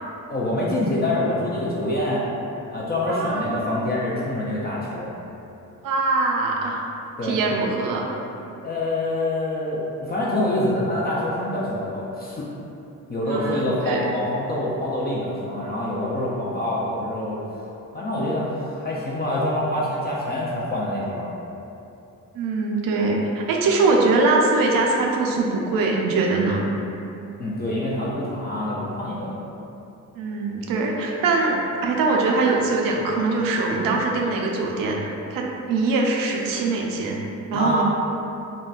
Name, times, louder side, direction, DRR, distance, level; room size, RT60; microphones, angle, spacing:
voice 1, 0.3-2.2 2.7-5.1 7.2-7.4 8.6-12.5 13.1-17.4 17.9-21.3 27.4-29.4 37.5-37.8, left 1 dB, 30° left, -6 dB, 0.4 m, -26 dB
voice 2, 3.1-3.6 5.8-6.8 7.2-8.1 13.3-14.0 22.3-26.6 30.2-37.2 37.5-37.8, right 3 dB, 85° right, 0 dB, 0.5 m, -22 dB
3.8 x 2.2 x 2.3 m, 2.9 s
cardioid pair, 105°, 33 cm